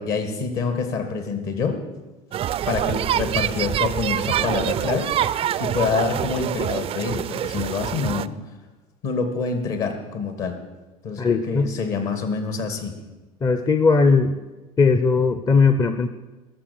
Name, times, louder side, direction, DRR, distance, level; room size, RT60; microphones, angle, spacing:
voice 1, 0.0-1.8 2.7-8.3 9.0-10.6 11.0-13.0, left 5 dB, 55° left, 7 dB, 2.4 m, -26 dB
sound 1, 2.3-8.3, right 11 dB, 30° right, 0.5 m, -25 dB
voice 2, 11.2-11.7 13.4-14.4 14.8-16.1, left 4 dB, 20° left, 10 dB, 0.8 m, -18 dB
20.5 x 7.2 x 6.7 m, 1.2 s
figure-of-eight pair, 65°, 19 cm